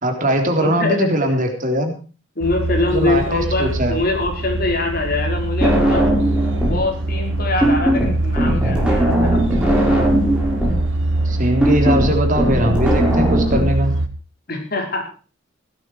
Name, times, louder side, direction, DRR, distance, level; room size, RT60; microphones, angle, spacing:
voice 1, 0.0-1.9 2.9-4.0 11.3-13.9, right 1 dB, 45° right, 4 dB, 3.7 m, -20 dB
voice 2, 0.6-1.1 2.4-6.1 6.6-9.6 14.5-15.0, left 2 dB, 50° left, 2 dB, 5.2 m, -23 dB
sound 1, 2.4-14.1, right 2 dB, 80° right, 1.7 m, -23 dB
sound 2, 5.6-6.9 7.1-13.6, right 1 dB, 5° right, 5.9 m, -18 dB
16.5 x 13.0 x 4.7 m, 0.37 s
head